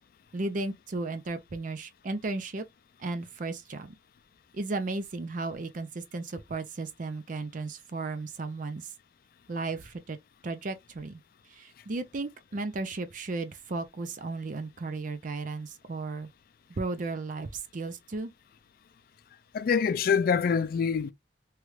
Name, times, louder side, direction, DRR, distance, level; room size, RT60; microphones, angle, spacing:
voice 1, 0.3-2.7 3.0-3.9 4.5-8.9 9.5-10.2 10.4-11.2 11.5-16.3 16.7-18.3, right 3 dB, 45° right, 0.5 m, -35 dB
voice 2, 19.5-21.1, left 6 dB, 55° left, 0.3 m, -25 dB
3.1 x 2.3 x 3.1 m
head